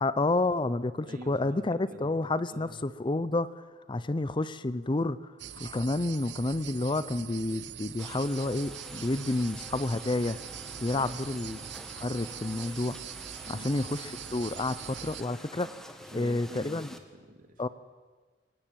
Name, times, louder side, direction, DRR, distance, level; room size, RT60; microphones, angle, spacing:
voice 1, 0.0-5.2 5.6-10.4 10.8-11.6 12.0-13.0 13.5-15.7 16.1-16.9 17.6-17.7, left 2 dB, 30° left, 16 dB, 0.6 m, -30 dB
voice 2, 1.1-2.8 10.9-11.1 13.4-13.7 16.0-17.7, equal, 50° right, 6 dB, 2.5 m, -48 dB
sound 1, 5.4-15.2, right 9 dB, 75° right, 0.9 m, -43 dB
sound 2, 8.0-17.0, equal, 5° left, 1.7 m, -47 dB
22.5 x 17.5 x 9.1 m, 1.4 s
head